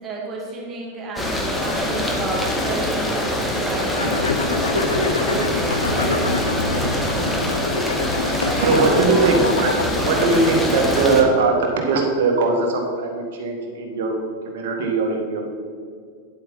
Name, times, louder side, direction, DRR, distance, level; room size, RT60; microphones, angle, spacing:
voice 1, 0.0-6.2 8.4-9.4, right 2 dB, 25° right, -3 dB, 2.5 m, -31 dB
sound 1, 1.2-11.2, left 1 dB, 10° left, 1.5 m, -24 dB
sound 2, 3.9-10.2, left 3 dB, 75° left, 0.7 m, -26 dB
voice 2, 6.9-7.3 8.3-9.4 10.0-14.1 14.4-15.4, right 3 dB, 55° right, 1 dB, 1.9 m, -20 dB
9.7 x 7.9 x 4.2 m, 2.1 s
figure-of-eight pair, 90°, 0 cm